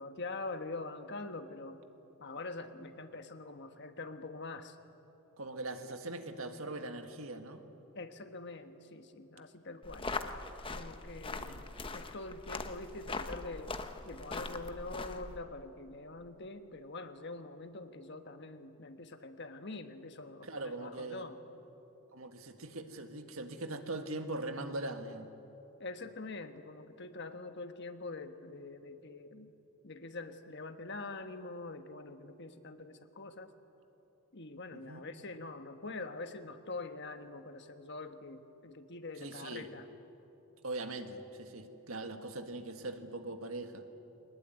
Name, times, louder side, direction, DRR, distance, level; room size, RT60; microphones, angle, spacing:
voice 1, 0.0-1.8 2.2-4.8 7.9-10.1 10.7-13.7 14.0-21.4 25.8-29.5 29.8-33.5 34.3-39.9, left 3 dB, 55° left, 8 dB, 1.4 m, -44 dB
voice 2, 5.4-7.6 11.4-11.6 20.4-21.2 22.1-25.3 34.7-35.1 39.2-39.7 40.6-43.8, right 2 dB, 75° right, 6 dB, 1.8 m, -41 dB
sound 1, 9.8-15.4, left 3 dB, 25° left, 1.0 m, -41 dB
23.5 x 20.0 x 9.5 m, 2.9 s
head